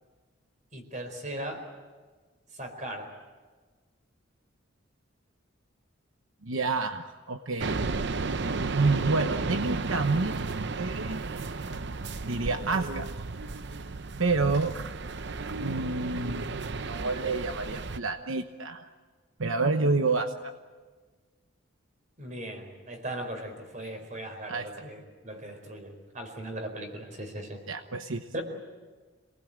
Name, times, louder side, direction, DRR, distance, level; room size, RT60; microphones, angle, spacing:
voice 1, 0.7-1.6 2.5-3.1 22.2-27.6 28.3-28.4, right 1 dB, 40° right, 5 dB, 4.5 m, -38 dB
voice 2, 6.4-7.8 8.7-11.2 12.2-13.1 14.2-14.8 15.6-16.5 16.9-18.8 19.4-20.5 24.5-24.7 27.7-28.2, right 3 dB, 80° right, 7 dB, 1.0 m, -28 dB
sound 1, 7.6-18.0, right 3 dB, 55° right, 0.7 m, -33 dB
27.0 x 19.5 x 8.9 m, 1.4 s
head